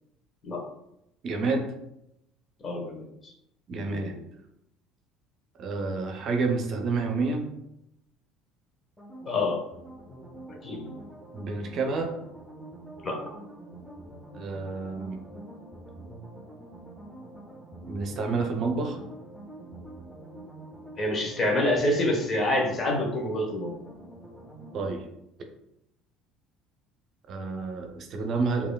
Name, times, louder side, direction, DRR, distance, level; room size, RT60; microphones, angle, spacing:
voice 1, 1.2-1.7 3.7-4.1 5.6-7.5 11.3-12.1 14.3-15.2 17.9-19.0 24.7-25.0 27.3-28.7, right 3 dB, 50° right, 4 dB, 0.6 m, -29 dB
voice 2, 2.6-3.3 3.7-4.2 9.2-9.6 10.6-10.9 13.0-13.2 21.0-23.7, left 1 dB, 35° left, 1 dB, 1.1 m, -27 dB
sound 1, 9.0-24.9, right 1 dB, 10° left, 1.0 m, -46 dB
4.9 x 2.9 x 2.3 m, 0.82 s
hypercardioid pair, 65°, 0 cm